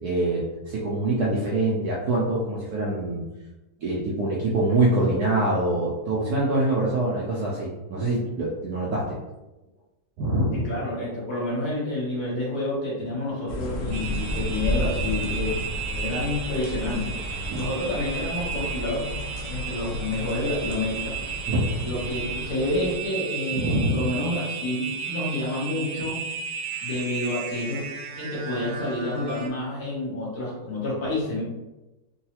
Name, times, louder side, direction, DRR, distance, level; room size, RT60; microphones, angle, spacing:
voice 1, 0.0-3.2 3.8-9.2 10.2-10.7 17.5-17.6 21.5-21.9 23.5-24.1, right 2 dB, 70° right, -5 dB, 0.9 m, -25 dB
voice 2, 10.5-15.6 15.9-19.1 19.5-21.1 21.8-26.2 26.8-27.8 28.2-31.4, left 2 dB, 55° left, -6 dB, 1.5 m, -29 dB
sound 1, 13.5-22.9, left 1 dB, 90° left, 0.6 m, -33 dB
sound 2, 13.9-29.5, right 6 dB, 85° right, 1.4 m, -34 dB
3.9 x 2.3 x 2.8 m, 1.0 s
omnidirectional pair, 2.1 m